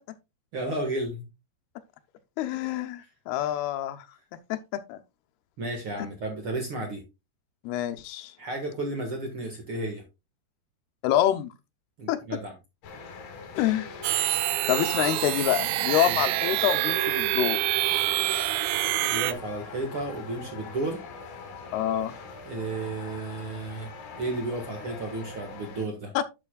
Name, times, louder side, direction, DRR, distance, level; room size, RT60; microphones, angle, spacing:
voice 1, 0.5-1.3 3.0-3.1 5.6-7.0 8.4-10.0 12.0-12.5 16.1-16.2 19.0-21.0 22.4-23.9 24.2-26.1, right 2 dB, 55° right, 1.5 m, -33 dB
voice 2, 2.4-4.1 4.5-5.0 7.6-8.4 11.0-11.5 12.1-12.2 13.5-13.9 14.7-17.6 21.7-22.1 26.1-26.2, left 12 dB, 80° left, 2.5 m, -26 dB
sound 1, 12.8-25.9, left 4 dB, 60° left, 3.3 m, -43 dB
sound 2, 14.0-19.3, right 14 dB, 85° right, 2.1 m, -26 dB
12.0 x 6.7 x 2.3 m
omnidirectional pair, 4.9 m